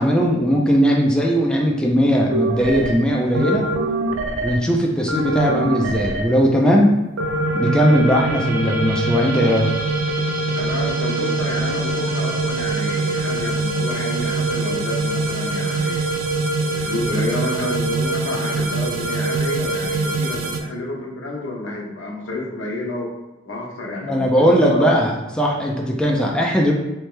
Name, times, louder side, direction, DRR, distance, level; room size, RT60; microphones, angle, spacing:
voice 1, 0.0-3.7 4.4-6.9 7.5-9.7 24.0-26.7, equal, 5° left, -2 dB, 0.4 m, -18 dB
sound 1, 2.3-2.9 3.3-4.5 5.1-6.2 7.2-20.6, right 3 dB, 85° right, 0.5 m, -23 dB
voice 2, 10.6-16.1 16.7-23.1 23.5-24.9, left 2 dB, 75° left, -1 dB, 0.9 m, -29 dB
3.2 x 3.1 x 3.2 m, 0.99 s
head